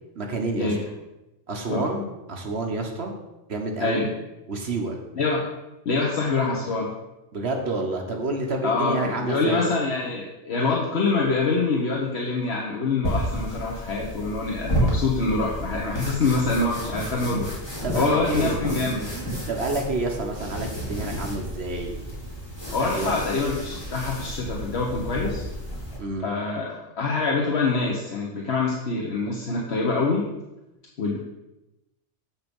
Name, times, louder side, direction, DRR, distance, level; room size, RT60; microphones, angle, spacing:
voice 1, 0.1-0.7 1.5-3.1 3.5-4.1 4.5-5.0 7.3-9.7 17.8-22.0 22.8-23.1 26.0-26.3, right 2 dB, 60° right, 2 dB, 1.4 m, -29 dB
voice 2, 5.8-6.9 8.6-17.5 17.9-19.1 22.7-25.4 26.2-30.3 31.0-31.2, left 3 dB, 60° left, -2 dB, 1.3 m, -25 dB
sound 1, 13.0-26.0, equal, 20° left, 2.4 m, -31 dB
7.4 x 5.9 x 5.3 m, 0.99 s
omnidirectional pair, 1.2 m